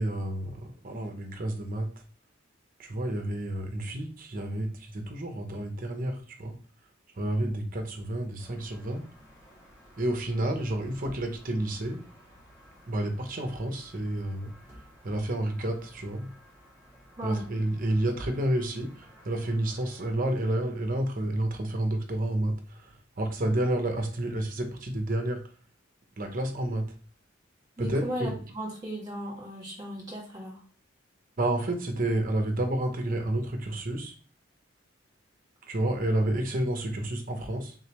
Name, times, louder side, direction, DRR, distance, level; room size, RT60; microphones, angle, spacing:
voice 1, 0.0-1.9 2.8-6.5 7.2-9.0 10.0-12.0 12.9-14.5 15.0-16.3 17.2-25.4 26.2-26.9 27.8-28.3 31.4-34.1 35.7-37.7, right 1 dB, 45° right, 4 dB, 0.7 m, -30 dB
sound 1, 8.4-20.1, equal, 15° left, 1.6 m, -53 dB
voice 2, 27.8-30.6, right 1 dB, 20° right, -4 dB, 1.8 m, -37 dB
3.8 x 3.2 x 2.9 m, 0.40 s
head